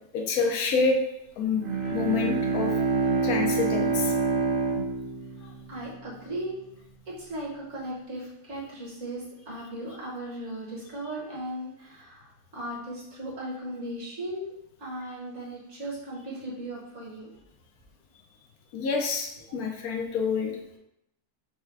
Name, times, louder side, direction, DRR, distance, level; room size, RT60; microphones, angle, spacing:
voice 1, 0.1-1.0 1.4-2.7 3.2-4.1 18.7-20.8, left 4 dB, 75° left, 2 dB, 1.2 m, -27 dB
Bowed string instrument, 1.5-6.4, right 4 dB, 75° right, 0.4 m, -27 dB
voice 2, 5.7-6.6 7.1-14.5 14.8-17.3, right 1 dB, 50° right, -5 dB, 1.5 m, -37 dB
4.7 x 2.2 x 4.6 m, 0.83 s
omnidirectional pair, 1.6 m